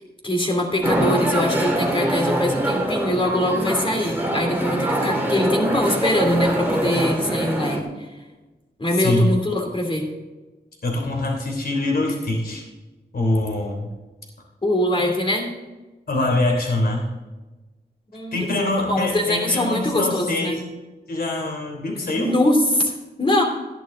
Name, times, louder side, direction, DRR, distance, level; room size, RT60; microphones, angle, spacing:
voice 1, 0.2-8.1 8.8-10.0 14.6-15.5 18.1-20.6 22.2-22.9 23.2-23.4, left 1 dB, 30° left, 1 dB, 2.8 m, -22 dB
sound 1, 0.8-7.8, right 1 dB, 10° right, 2.1 m, -23 dB
voice 2, 9.0-9.3 10.8-12.6 13.1-13.9 16.1-17.0 18.3-20.6 21.1-22.3, left 2 dB, 65° left, 0 dB, 3.2 m, -23 dB
13.0 x 10.5 x 3.8 m, 1.2 s
wide cardioid pair, 85°, 17 cm